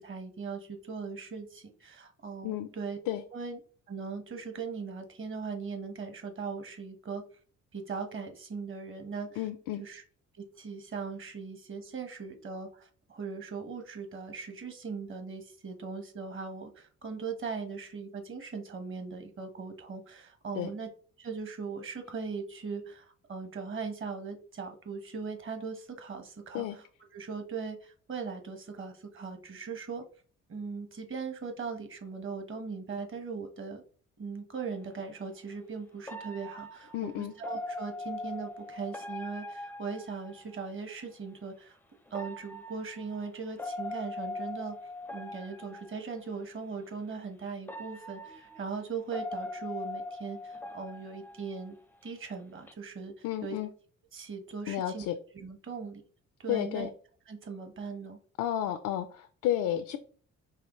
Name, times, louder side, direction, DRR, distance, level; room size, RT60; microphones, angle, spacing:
voice 1, 0.0-3.1 3.3-3.6 3.9-7.2 7.7-9.4 9.8-10.0 10.4-20.9 21.2-26.8 27.1-30.0 30.5-33.8 34.2-41.8 42.1-44.7 45.1-51.8 52.0-53.5 54.1-55.1 55.3-56.0 56.4-56.9 57.3-58.2, right 5 dB, 45° right, 6 dB, 1.2 m, -39 dB
voice 2, 9.4-9.8 20.6-20.7 26.5-26.8 36.9-37.3 53.2-53.7 54.7-55.2 56.5-56.9 58.4-60.0, left 12 dB, 90° left, 9 dB, 0.5 m, -32 dB
sound 1, 34.6-34.7 36.1-40.8 42.1-46.3 47.1-47.2 47.7-52.1 52.4-52.7, left 2 dB, 5° left, 0.4 m, -42 dB
4.8 x 3.1 x 3.0 m, 0.43 s
cardioid pair, 90°, 30 cm